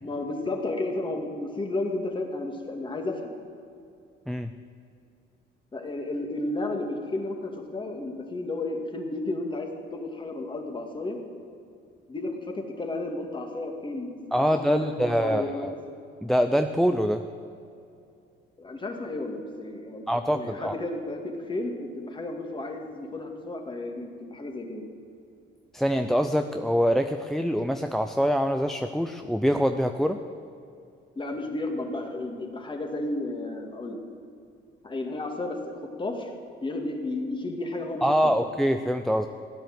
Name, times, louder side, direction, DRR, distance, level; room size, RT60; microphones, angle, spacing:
voice 1, 0.0-3.4 5.7-11.2 12.1-15.7 18.6-20.0 20.3-24.8 31.2-34.0 34.8-36.3 36.6-38.4, left 2 dB, 25° left, 3 dB, 2.2 m, -33 dB
voice 2, 14.3-15.7 16.2-17.2 20.1-20.8 25.7-30.2 38.0-39.3, equal, ahead, 7 dB, 0.5 m, -24 dB
16.0 x 10.0 x 7.9 m, 2.6 s
cardioid pair, 110°, 20 cm